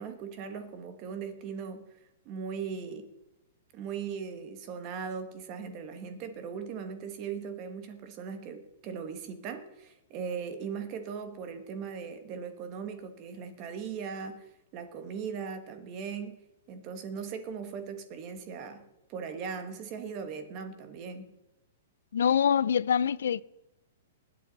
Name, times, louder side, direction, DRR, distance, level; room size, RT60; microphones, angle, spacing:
voice 1, 0.0-1.9 2.2-3.1 3.7-21.3, right 6 dB, 25° right, 1.3 m, -39 dB
voice 2, 22.1-23.4, left 8 dB, 80° left, 0.5 m, -25 dB
19.5 x 8.4 x 4.0 m
hypercardioid pair, 170°, 0 cm